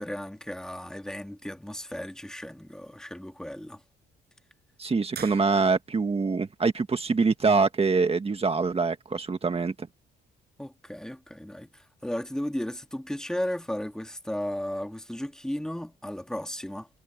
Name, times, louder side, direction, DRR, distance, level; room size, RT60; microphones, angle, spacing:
voice 1, 0.0-3.8 10.6-16.9, left 1 dB, 5° left, 1.9 m, -35 dB
voice 2, 4.8-9.9, right 4 dB, 30° right, 1.7 m, -24 dB
sound 1, 5.1-6.1, right 8 dB, 55° right, 6.3 m, -43 dB
cardioid pair, 90°, 20 cm